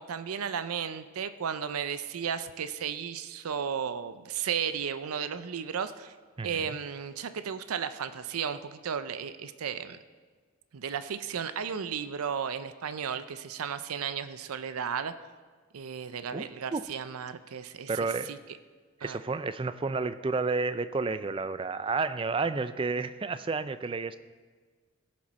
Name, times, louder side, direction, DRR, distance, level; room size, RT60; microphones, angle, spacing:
voice 1, 0.0-6.1 6.4-10.0 10.7-15.1 15.7-17.9 18.3-18.4 19.0-19.2, right 7 dB, 85° right, 12 dB, 0.5 m, -34 dB
voice 2, 6.4-6.7 16.3-16.5 16.7-16.8 17.9-18.4 19.0-24.2, right 4 dB, 25° right, 13 dB, 0.3 m, -31 dB
16.5 x 7.5 x 4.3 m, 1.5 s
head